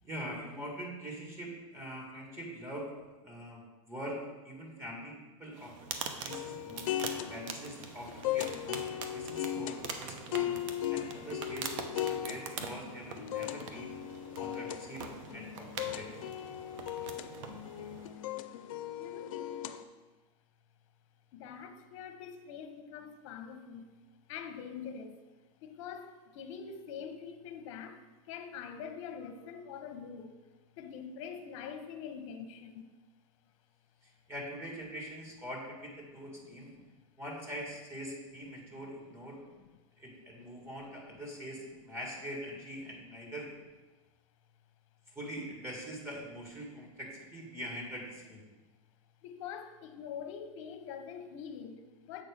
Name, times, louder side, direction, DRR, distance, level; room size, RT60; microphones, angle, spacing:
voice 1, 0.0-2.9 3.2-10.5 10.9-13.9 14.4-15.0 15.3-16.1 34.0-36.7 37.2-39.4 40.0-43.5 45.1-48.4, equal, 15° right, 2.0 m, -43 dB
sound 1, 5.5-18.2, right 5 dB, 70° right, 0.9 m, -44 dB
sound 2, 6.3-19.8, left 12 dB, 80° left, 0.5 m, -38 dB
voice 2, 19.0-19.4 21.3-23.9 24.3-25.2 25.6-30.3 30.8-32.9 36.8-36.9 49.2-52.2, left 7 dB, 65° left, 0.9 m, -44 dB
7.6 x 4.3 x 5.1 m
supercardioid pair, 130°, 17 cm